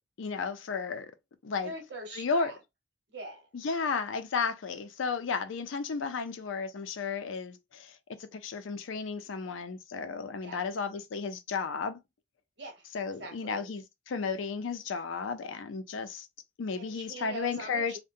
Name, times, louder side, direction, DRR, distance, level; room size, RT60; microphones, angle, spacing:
voice 1, 0.2-1.1 1.4-1.7 2.1-2.5 3.6-8.0 8.3-12.0 12.9-16.3 16.6-18.0, left 5 dB, 85° left, 0.4 m, -33 dB
voice 2, 1.6-2.6 3.1-3.5 10.4-10.7 12.6-12.9 13.2-13.8 16.8-18.0, right 2 dB, 60° right, 1.0 m, -43 dB
2.7 x 2.1 x 2.5 m
head